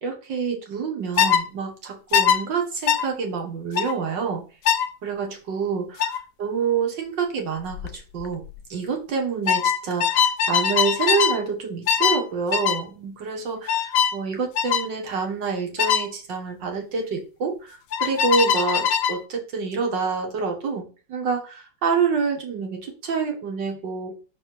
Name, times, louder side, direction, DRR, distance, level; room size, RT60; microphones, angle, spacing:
voice 1, 0.0-4.4 5.0-8.4 8.7-24.1, right 5 dB, 75° right, 2 dB, 2.2 m, -27 dB
sound 1, 1.2-1.4 2.1-2.4 2.9-3.1 3.8-3.9 4.7-4.9 6.0-6.2 7.7-7.9 8.2-8.6 9.5-11.4 11.9-12.2 12.5-12.8 13.7-14.2 14.6-14.9 15.8-16.1 17.9-19.2, left 8 dB, 70° left, 0.8 m, -21 dB
5.8 x 4.3 x 4.7 m, 0.36 s
omnidirectional pair, 2.0 m